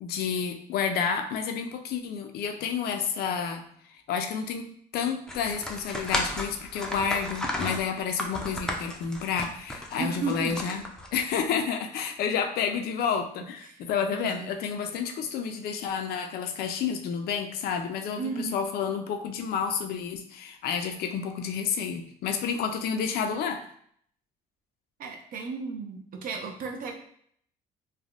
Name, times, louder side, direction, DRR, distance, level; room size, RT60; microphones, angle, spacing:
voice 1, 0.0-3.7 4.1-4.7 4.9-10.8 11.1-23.7, left 6 dB, 65° left, 6 dB, 0.4 m, -30 dB
sound 1, 5.3-11.4, left 1 dB, 5° left, 0.4 m, -34 dB
voice 2, 10.0-10.5 13.6-13.8 14.1-14.5 18.2-18.6 25.0-26.9, right 4 dB, 55° right, 3 dB, 0.6 m, -34 dB
3.4 x 2.2 x 2.4 m, 0.63 s
cardioid pair, 110°, 17 cm